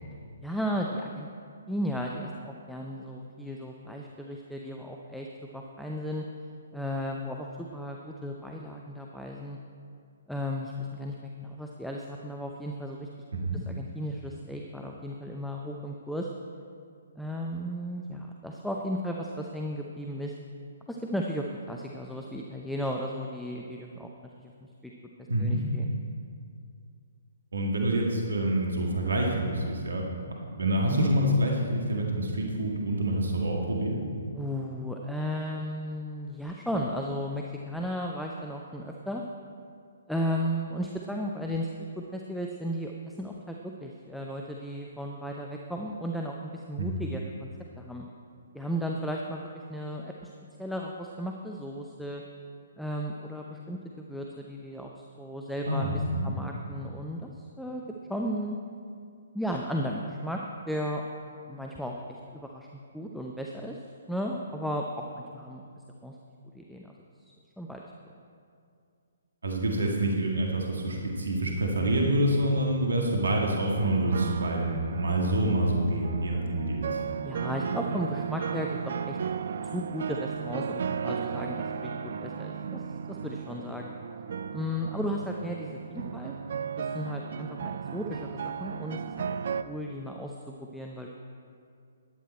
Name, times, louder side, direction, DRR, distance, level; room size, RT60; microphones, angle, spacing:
voice 1, 0.4-1.3 1.7-5.3 5.5-6.3 6.7-9.6 10.3-13.1 13.7-16.3 17.2-20.3 20.9-24.1 24.4-24.9 25.4-25.9 30.9-31.1 34.3-39.2 40.1-47.5 47.8-48.1 48.5-50.3 50.6-52.2 52.8-55.9 56.2-57.8 58.1-58.6 59.3-60.4 60.7-61.0 61.5-62.7 62.9-63.8 64.1-65.6 66.0-66.1 66.5-66.9 67.6-67.8 77.2-79.2 79.7-82.8 83.1-83.9 84.5-86.3 86.8-89.3 89.6-91.1, equal, ahead, 0 dB, 0.7 m, -35 dB
voice 2, 13.3-13.6 25.3-25.6 27.5-30.1 30.6-34.0 46.8-47.0 55.6-56.3 69.4-77.0, right 1 dB, 70° right, 0 dB, 1.9 m, -27 dB
sound 1, 73.7-89.6, right 7 dB, 55° right, 0.5 m, -35 dB
13.5 x 10.5 x 4.3 m, 2.3 s
figure-of-eight pair, 130°, 0 cm